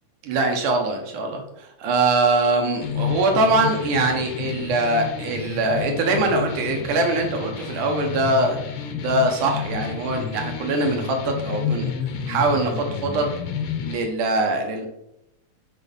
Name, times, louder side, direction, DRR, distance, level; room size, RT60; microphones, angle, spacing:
voice 1, 0.2-8.6 9.0-11.9 12.3-13.3 13.8-14.9, right 2 dB, 90° right, 3 dB, 2.8 m, -22 dB
sound 1, 2.8-14.0, left 7 dB, 70° left, 1.2 m, -30 dB
7.2 x 4.2 x 5.3 m, 0.82 s
omnidirectional pair, 3.5 m